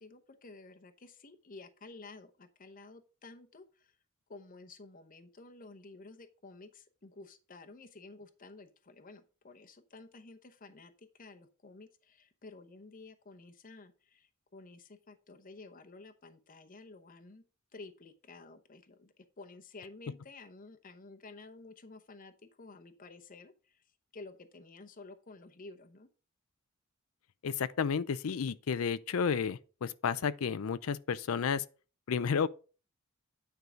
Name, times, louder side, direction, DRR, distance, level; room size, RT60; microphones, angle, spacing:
voice 1, 0.0-4.0 4.3-17.4 17.7-22.3 22.6-26.1, left 3 dB, 40° left, 0.8 m, -52 dB
voice 2, 27.4-31.6 32.1-32.5, left 6 dB, 80° left, 0.5 m, -32 dB
9.3 x 4.7 x 5.0 m
head